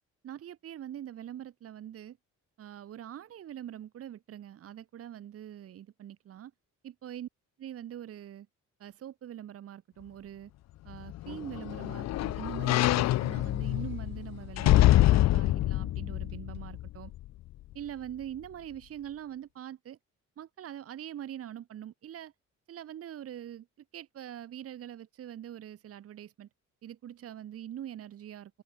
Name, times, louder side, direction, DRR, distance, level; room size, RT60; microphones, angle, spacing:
voice 1, 0.2-2.2 2.6-6.5 6.8-7.3 7.6-8.5 8.8-10.5 10.8-17.1 17.7-20.0 20.4-22.3 22.7-23.7 23.9-26.5 26.8-28.6, right 11 dB, 50° right, 2.0 m, -43 dB
sound 1, 10.9-17.3 17.7-17.8, left 15 dB, 60° left, 0.6 m, -26 dB
open air
cardioid pair, 175°, 31 cm